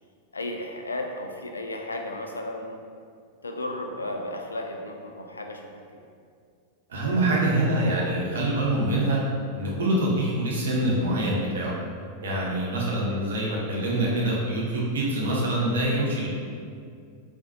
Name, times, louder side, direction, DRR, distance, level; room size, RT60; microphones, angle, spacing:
voice 1, 0.3-2.8 3.4-5.8, left 1 dB, 75° left, 3 dB, 0.3 m, -34 dB
voice 2, 6.9-9.2 9.5-11.7 12.2-16.3, right 1 dB, 65° right, -4 dB, 0.7 m, -25 dB
3.8 x 2.4 x 2.8 m, 2.2 s
figure-of-eight pair, 90°, 0 cm